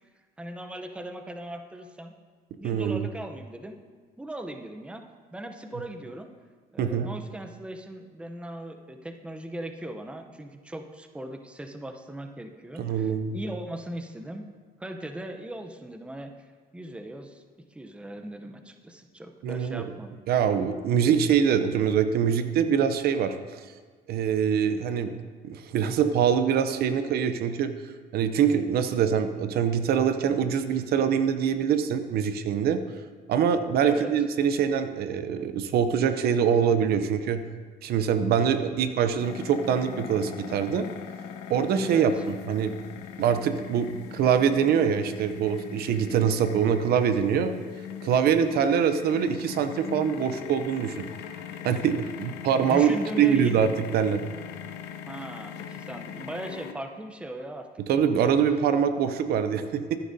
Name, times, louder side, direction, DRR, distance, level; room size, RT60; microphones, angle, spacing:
voice 1, 0.4-2.1 2.6-3.8 4.2-5.0 5.3-6.3 6.7-14.5 14.8-16.3 16.7-17.4 17.7-20.2 33.8-34.1 38.7-38.8 41.8-42.3 52.5-53.6 55.1-57.7 58.2-58.3, right 1 dB, 5° right, 6 dB, 0.7 m, -39 dB
voice 2, 2.6-3.1 6.8-7.1 12.8-13.4 19.4-19.9 20.3-23.6 24.1-25.1 25.4-27.7 28.1-32.8 33.3-37.4 37.8-40.9 41.5-42.1 42.5-42.8 43.2-47.5 48.0-51.0 51.6-54.2 57.9-60.0, right 7 dB, 65° right, 9 dB, 0.6 m, -24 dB
sound 1, 39.2-56.7, left 8 dB, 85° left, 0.8 m, -40 dB
14.5 x 10.0 x 2.7 m, 1.5 s
cardioid pair, 110°, 17 cm